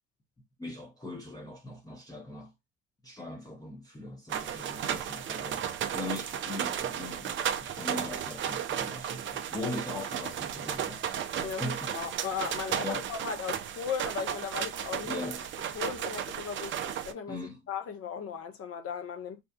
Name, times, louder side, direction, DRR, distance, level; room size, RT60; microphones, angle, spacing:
voice 1, 0.6-2.5 3.0-5.6 5.9-11.0 11.4-11.9 12.8-13.0 15.0-15.4 17.3-17.6, left 2 dB, 10° left, 0.8 m, -40 dB
sound 1, 4.3-17.1, right 9 dB, 35° right, 0.4 m, -34 dB
voice 2, 11.4-15.3 15.7-17.4 17.7-19.4, left 6 dB, 40° left, 0.8 m, -37 dB
2.7 x 2.3 x 2.3 m
hypercardioid pair, 60°, 38 cm